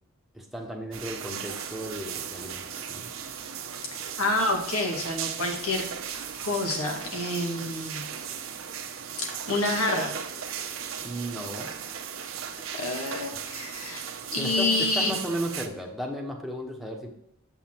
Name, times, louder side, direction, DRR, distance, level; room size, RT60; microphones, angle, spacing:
voice 1, 0.3-3.1 11.0-11.7 14.4-17.1, equal, ahead, 0 dB, 1.1 m, -35 dB
sound 1, 0.9-15.7, right 7 dB, 65° right, 0.9 m, -37 dB
voice 2, 3.9-5.8 6.4-8.0 9.2-10.1 12.7-14.0 14.3-15.1, left 2 dB, 90° left, 1 dB, 1.9 m, -28 dB
8.1 x 5.7 x 4.6 m, 0.80 s
head